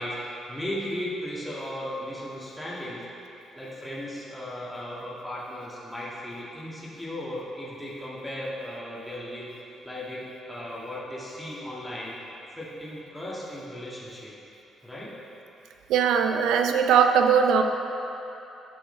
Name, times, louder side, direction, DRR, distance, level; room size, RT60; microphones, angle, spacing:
voice 1, 0.0-3.0 3.5-12.2 12.5-14.4 14.8-15.1, left 1 dB, 5° left, -7 dB, 1.8 m, -36 dB
voice 2, 15.9-17.6, right 7 dB, 85° right, 6 dB, 0.6 m, -20 dB
10.5 x 7.8 x 3.3 m, 3.0 s
cardioid pair, 90°, 0 cm